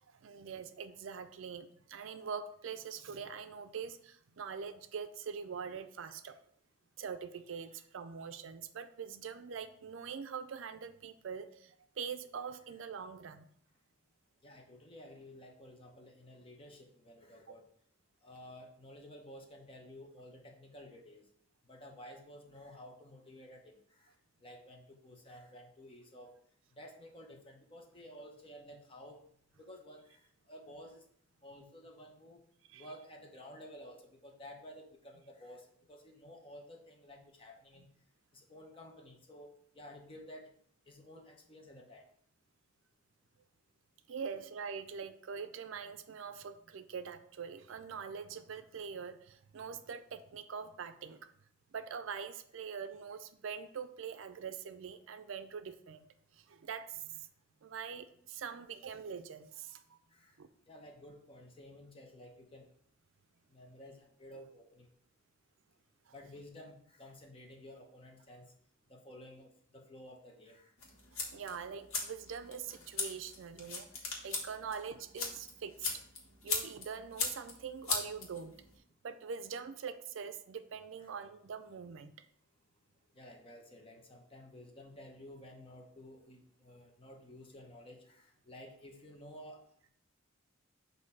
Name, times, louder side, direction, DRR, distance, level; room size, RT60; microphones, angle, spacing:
voice 1, 0.0-6.4 7.0-13.5 17.5-17.6 32.7-32.9 44.1-51.3 51.7-56.1 56.3-57.3 57.6-60.0 60.4-60.5 66.1-66.2 71.3-75.9 76.4-78.5 79.0-82.1, right 6 dB, 70° right, 10 dB, 0.4 m, -43 dB
voice 2, 14.4-17.7 18.2-21.3 21.6-26.4 26.8-29.2 29.6-31.0 31.4-32.4 32.7-37.9 38.3-40.5 40.9-42.1 60.1-60.4 60.7-62.7 63.5-64.9 66.1-68.5 68.9-70.7 81.0-81.1 83.1-89.7, left 1 dB, 25° left, 2 dB, 0.8 m, -53 dB
sound 1, 70.8-78.8, left 4 dB, 90° left, 1.4 m, -40 dB
6.4 x 2.7 x 5.4 m, 0.65 s
head